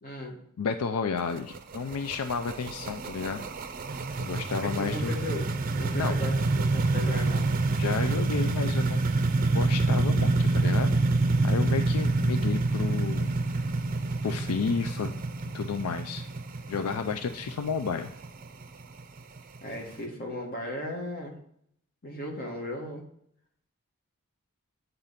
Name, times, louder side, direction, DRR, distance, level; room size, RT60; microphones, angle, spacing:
voice 1, 0.0-0.4 4.6-5.5 5.7-7.5 19.6-21.3 22.0-23.0, left 1 dB, 40° left, 0 dB, 1.7 m, -36 dB
voice 2, 0.6-3.5 4.2-5.2 5.9-6.2 7.7-9.0 9.5-11.0 11.4-13.3 14.2-15.1 15.5-16.3 16.7-18.1, left 5 dB, 80° left, 8 dB, 0.4 m, -31 dB
sound 1, 1.2-19.9, right 3 dB, 40° right, 0.5 m, -27 dB
8.9 x 3.9 x 5.7 m, 0.70 s
head